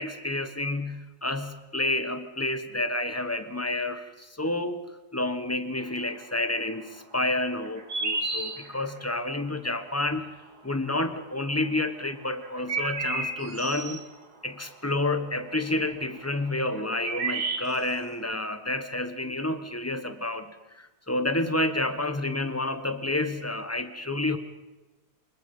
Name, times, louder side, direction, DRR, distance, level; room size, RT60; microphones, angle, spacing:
voice 1, 0.0-4.8 5.1-10.3 10.6-14.0 14.4-24.4, left 2 dB, 10° left, 10 dB, 1.0 m, -29 dB
sound 1, 7.6-9.0 11.0-11.1 12.3-14.0 16.5-16.6 16.8-18.0, right 3 dB, 80° right, 2.5 m, -31 dB
25.5 x 21.5 x 5.5 m, 1.1 s
omnidirectional pair, 1.7 m